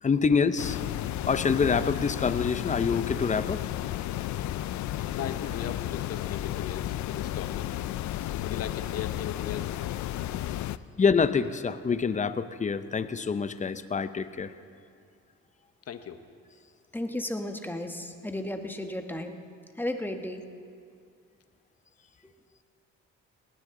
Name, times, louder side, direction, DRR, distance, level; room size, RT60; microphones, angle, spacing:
voice 1, 0.0-0.8 1.3-3.6 11.0-14.5, left 5 dB, 25° left, 12 dB, 0.7 m, -26 dB
sound 1, 0.6-10.8, left 13 dB, 70° left, 0.5 m, -33 dB
voice 2, 5.1-7.7 8.4-9.8 15.9-16.2, left 8 dB, 55° left, 9 dB, 1.0 m, -38 dB
voice 3, 16.9-19.4 19.7-20.4, left 1 dB, 5° left, 5 dB, 1.2 m, -34 dB
19.5 x 17.0 x 3.8 m, 2.3 s
cardioid pair, 90°, 30 cm